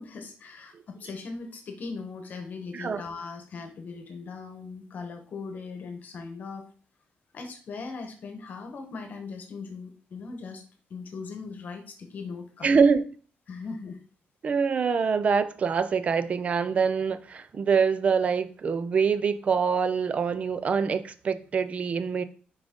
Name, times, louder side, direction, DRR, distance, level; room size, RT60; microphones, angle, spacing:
voice 1, 0.0-6.6 7.3-10.6 10.9-12.8 13.5-14.0, left 4 dB, 55° left, 1.0 m, -39 dB
voice 2, 12.6-13.0 14.4-22.2, right 5 dB, 40° right, 0.5 m, -25 dB
6.1 x 5.0 x 3.6 m
cardioid pair, 140°, 4 cm